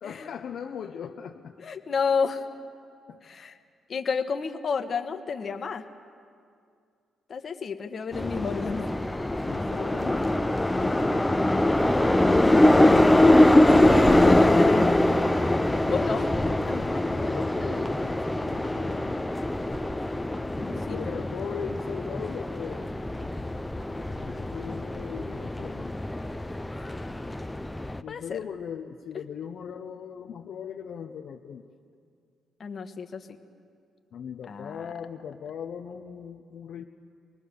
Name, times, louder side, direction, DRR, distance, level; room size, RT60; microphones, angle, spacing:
voice 1, 0.0-1.5 3.1-3.2 9.4-13.2 16.7-19.2 20.6-23.0 24.1-25.9 26.7-26.8 28.0-31.6 34.1-36.8, left 7 dB, 65° left, 2 dB, 0.9 m, -39 dB
voice 2, 1.6-2.4 3.2-3.5 3.9-5.8 7.3-9.0 13.7-15.2 15.9-17.0 20.5-21.4 28.1-28.4 32.6-33.4 34.5-34.8, left 5 dB, 45° left, 6 dB, 1.3 m, -31 dB
sound 1, 8.1-28.0, left 1 dB, 10° left, 0.6 m, -23 dB
24.5 x 19.5 x 6.9 m, 2.3 s
cardioid pair, 90°, 0 cm